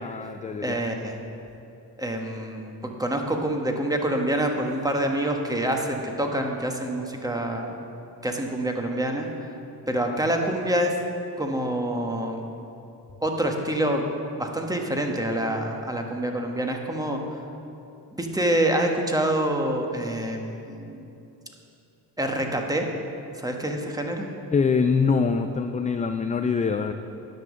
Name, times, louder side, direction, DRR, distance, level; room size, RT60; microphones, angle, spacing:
voice 1, 0.0-0.8 24.5-26.9, left 5 dB, 20° left, 7 dB, 0.4 m, -24 dB
voice 2, 0.6-1.2 2.0-7.8 8.2-9.5 9.9-10.9 11.4-12.4 13.2-14.0 14.4-17.2 18.1-21.0 22.2-22.9 23.4-24.3, right 1 dB, 10° right, 2 dB, 1.4 m, -26 dB
10.5 x 6.1 x 6.4 m, 2.8 s
supercardioid pair, 70°, 44 cm